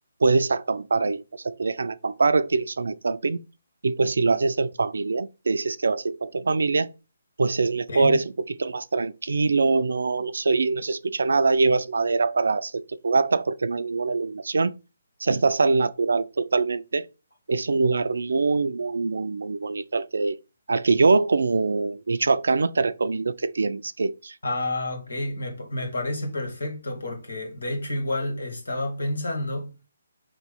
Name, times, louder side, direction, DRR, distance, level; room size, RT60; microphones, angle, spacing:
voice 1, 0.2-3.4 3.8-6.9 7.4-14.7 15.2-17.1 17.5-20.4 20.7-24.4, right 3 dB, 70° right, 0.4 m, -23 dB
voice 2, 24.4-29.7, left 1 dB, 80° left, 2.0 m, -29 dB
5.9 x 3.1 x 5.4 m
figure-of-eight pair, 145°, 0 cm